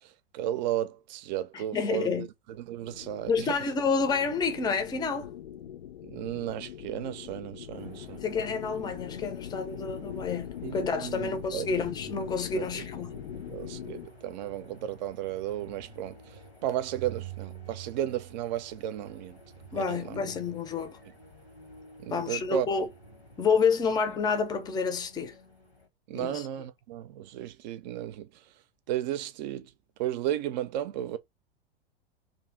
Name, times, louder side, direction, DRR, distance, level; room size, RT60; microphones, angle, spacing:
voice 1, 0.0-2.3 2.6-3.5 6.0-8.2 10.6-11.7 12.5-12.9 13.3-19.4 19.8-20.3 22.0-22.7 26.1-28.3 28.9-29.7 30.0-31.2, right 11 dB, 45° right, 0.6 m, -34 dB
voice 2, 1.5-2.3 3.3-5.3 8.2-13.1 19.7-21.0 22.1-22.9 23.4-25.4 26.1-26.5, left 5 dB, 15° left, 0.6 m, -29 dB
sound 1, 2.8-14.1, left 10 dB, 65° left, 0.5 m, -42 dB
sound 2, 7.7-25.9, right 4 dB, 85° left, 1.4 m, -49 dB
2.7 x 2.7 x 3.7 m
figure-of-eight pair, 90°, 30 cm